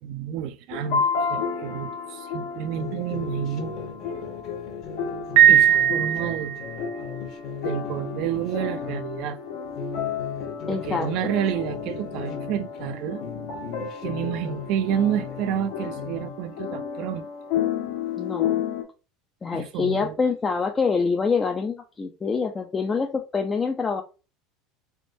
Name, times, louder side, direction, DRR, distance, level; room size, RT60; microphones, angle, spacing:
voice 1, 0.0-3.7 5.5-6.6 7.6-9.4 10.7-13.2 14.0-17.3 19.5-20.1, right 10 dB, 55° right, 0.4 m, -29 dB
sound 1, 0.7-18.8, left 7 dB, 75° left, 1.2 m, -32 dB
sound 2, 2.8-9.2 9.6-12.9 13.2-16.3, left 6 dB, 45° left, 0.9 m, -37 dB
Piano, 5.4-6.8, right 11 dB, 80° right, 0.9 m, -18 dB
voice 2, 10.7-11.3 18.2-18.6 19.4-24.0, left 5 dB, 15° left, 0.4 m, -26 dB
3.9 x 3.5 x 2.6 m
cardioid pair, 155°, 0 cm